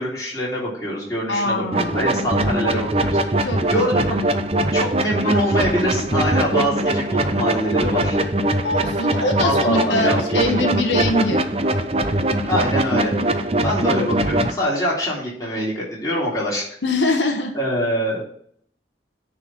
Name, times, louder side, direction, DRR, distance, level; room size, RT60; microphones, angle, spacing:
voice 1, 0.0-4.2 4.7-8.2 9.2-10.6 12.4-13.1 13.6-16.7 17.5-18.2, equal, 20° left, -5 dB, 3.3 m, -24 dB
voice 2, 1.3-2.1 3.4-3.9 8.6-11.5 16.8-17.5, left 1 dB, 85° left, 5 dB, 1.0 m, -23 dB
sound 1, 1.7-14.5, right 1 dB, 35° right, 0.6 m, -21 dB
9.3 x 3.9 x 6.0 m, 0.63 s
head